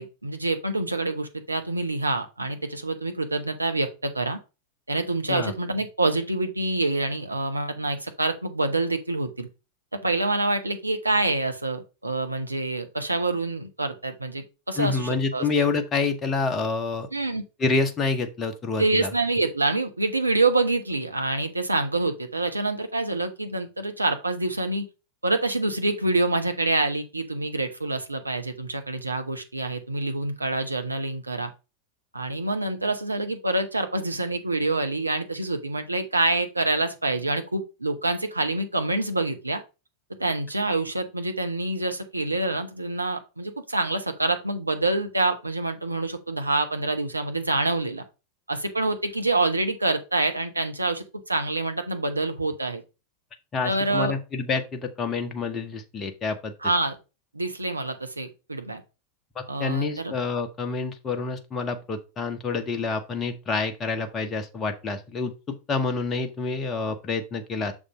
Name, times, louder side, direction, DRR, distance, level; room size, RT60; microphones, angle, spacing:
voice 1, 0.0-4.4 4.9-9.5 9.9-15.7 17.1-17.4 18.8-24.9 25.2-31.5 32.1-39.6 40.2-48.0 48.5-52.8 53.6-54.1 56.6-57.0 57.3-58.8 59.5-60.1, right 2 dB, 80° right, 6 dB, 0.8 m, -26 dB
voice 2, 14.8-17.1 17.6-19.1 53.5-56.5 59.4-67.7, left 4 dB, 25° left, 5 dB, 1.0 m, -28 dB
6.6 x 3.6 x 5.0 m, 0.29 s
figure-of-eight pair, 90°, 0 cm